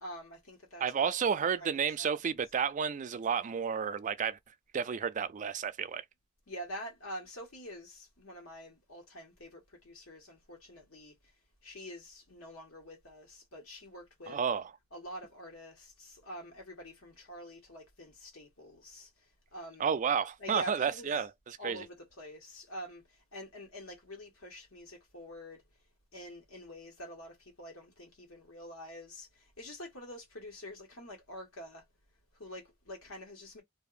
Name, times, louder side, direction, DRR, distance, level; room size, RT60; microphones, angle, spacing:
voice 1, 0.0-1.1 1.6-2.3 6.5-11.3 11.6-14.4 14.9-19.9 20.4-21.2 21.6-25.6 26.1-31.9 32.3-33.6, equal, 85° left, 1.5 m, -47 dB
voice 2, 0.8-4.4 4.7-6.0 14.3-14.6 19.8-21.8, right 7 dB, 40° right, 0.4 m, -31 dB
2.8 x 2.6 x 2.5 m
head